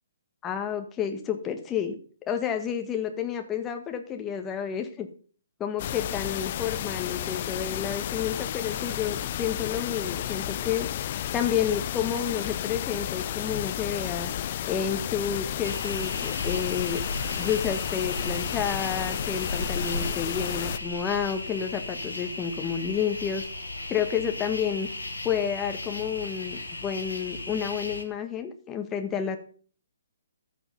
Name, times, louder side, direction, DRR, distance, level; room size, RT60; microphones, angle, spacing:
voice 1, 0.4-2.0 2.3-5.1 5.6-10.9 11.3-14.3 14.6-17.0 17.4-23.4 23.9-24.9 25.2-29.4, left 8 dB, 15° left, 5 dB, 1.6 m, -30 dB
sound 1, 5.8-20.8, left 11 dB, 40° left, 0.6 m, -32 dB
sound 2, 15.6-28.0, left 2 dB, 80° left, 2.2 m, -35 dB
14.5 x 6.0 x 5.4 m, 0.42 s
figure-of-eight pair, 130°, 0 cm